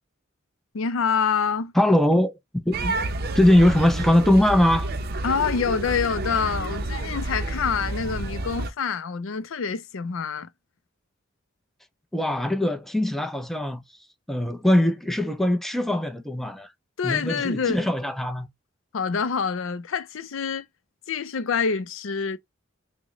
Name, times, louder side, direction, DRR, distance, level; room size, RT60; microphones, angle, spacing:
voice 1, 0.7-1.7 5.2-10.5 17.0-17.8 18.9-20.6 21.1-22.4, left 6 dB, 75° left, 0.5 m, -26 dB
voice 2, 1.8-3.0 3.3-4.9 12.1-13.8 14.3-16.7 17.0-18.5, left 1 dB, ahead, 0.5 m, -21 dB
sound 1, 2.7-8.7, right 2 dB, 50° right, 0.6 m, -29 dB
6.2 x 2.1 x 3.0 m
head